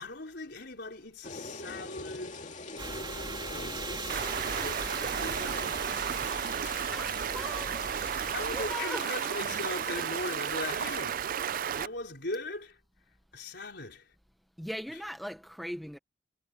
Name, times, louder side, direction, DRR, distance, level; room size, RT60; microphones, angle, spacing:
voice 1, 0.0-2.6 3.5-4.0 4.6-5.7 6.2-6.5 8.3-11.3 11.7-14.2, left 2 dB, 65° left, 4.5 m, -40 dB
sound 1, 1.2-11.0, left 2 dB, 40° left, 2.6 m, -44 dB
sound 2, 2.8-8.7, right 3 dB, 25° right, 2.6 m, -40 dB
Stream, 4.1-11.9, right 8 dB, 50° right, 0.4 m, -33 dB
voice 2, 6.9-8.0 8.5-9.4 14.6-16.0, equal, ahead, 0.8 m, -40 dB
head